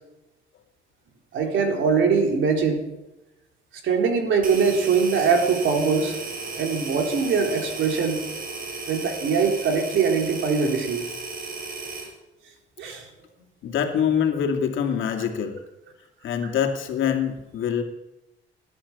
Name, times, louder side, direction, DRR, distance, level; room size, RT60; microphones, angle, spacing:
voice 1, 1.3-2.9 3.8-6.2 6.5-8.2 8.9-11.1 12.8-13.1 15.2-15.3, right 5 dB, 75° right, 3 dB, 3.7 m, -22 dB
sound 1, 4.4-12.1, right 3 dB, 45° right, 6.0 m, -35 dB
voice 2, 13.6-15.6 16.2-17.8, left 8 dB, 75° left, 3 dB, 2.5 m, -24 dB
18.5 x 11.0 x 7.2 m, 0.97 s
cardioid pair, 90°, 20 cm